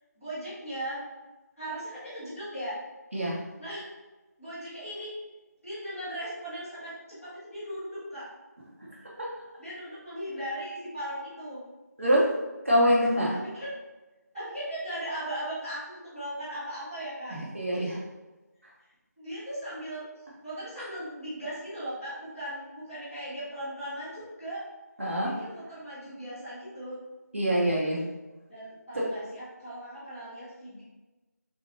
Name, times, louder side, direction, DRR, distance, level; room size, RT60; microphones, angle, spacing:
voice 1, 0.1-1.0 1.6-2.8 3.6-3.9 4.4-5.1 5.6-8.3 9.6-11.6 13.3-13.8 14.3-17.4 17.7-17.9 19.2-20.0 20.4-24.7 25.3-27.0 28.5-30.8, right 1 dB, ahead, -26 dB, 1.2 m, -38 dB
voice 2, 12.6-13.3 17.3-18.0 20.8-20.9 25.0-25.3 27.3-28.0 28.9-29.1, equal, 45° right, -5 dB, 1.1 m, -25 dB
6.1 x 2.5 x 2.7 m, 1.1 s
figure-of-eight pair, 180°, 9 cm